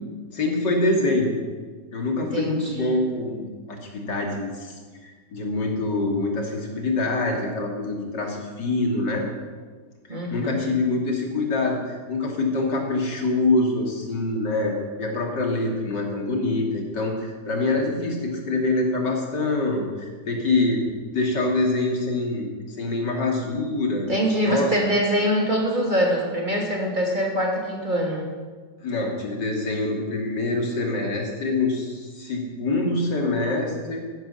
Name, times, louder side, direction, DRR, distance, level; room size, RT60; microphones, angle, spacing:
voice 1, 0.3-1.4 1.9-4.8 5.0-9.3 10.1-20.8 21.1-24.1 24.4-24.7 28.8-34.0, left 2 dB, 80° left, 0 dB, 3.3 m, -25 dB
voice 2, 2.2-2.9 10.1-10.7 24.1-28.2, equal, 25° right, -1 dB, 2.9 m, -24 dB
15.0 x 12.5 x 7.1 m, 1.5 s
omnidirectional pair, 1.8 m